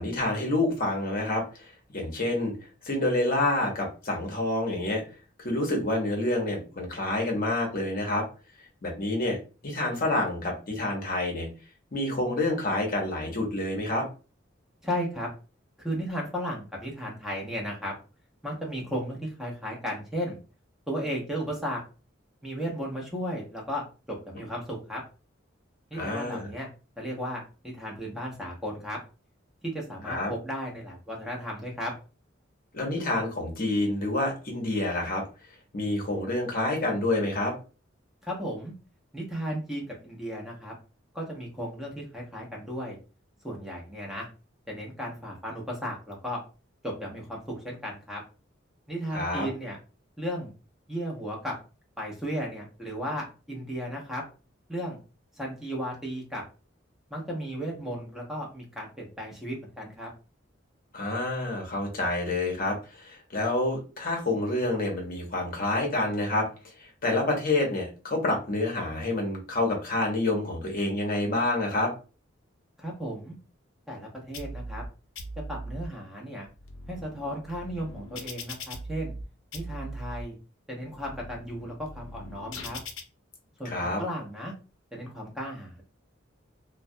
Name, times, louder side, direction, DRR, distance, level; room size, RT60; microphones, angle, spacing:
voice 1, 0.0-2.5 2.8-5.0 5.4-8.3 8.8-9.4 9.6-11.5 11.9-14.1 25.9-26.5 30.1-30.3 32.7-35.2 35.7-37.5 49.1-49.5 60.9-71.9 83.6-84.0, left 2 dB, 45° left, 1 dB, 0.8 m, -28 dB
voice 2, 14.8-15.3 15.8-17.9 18.4-20.4 20.9-21.8 22.4-25.0 25.9-26.7 27.0-29.0 29.6-31.9 38.2-38.7 39.1-40.7 41.1-43.0 43.4-44.3 44.7-46.4 46.8-48.2 48.9-49.8 50.2-50.5 50.9-51.6 52.0-54.2 54.7-55.0 55.4-56.4 57.1-60.1 72.8-73.4 73.9-74.8 75.5-76.5 76.9-79.1 79.5-80.3 80.7-82.8 83.6-84.5 84.9-85.8, equal, ahead, -2 dB, 0.7 m, -35 dB
sound 1, 74.3-74.9 75.1-75.9 76.4-79.2 79.5-80.2 80.8-83.0, equal, 85° left, 0.5 m, -40 dB
2.2 x 2.1 x 2.6 m, 0.34 s
head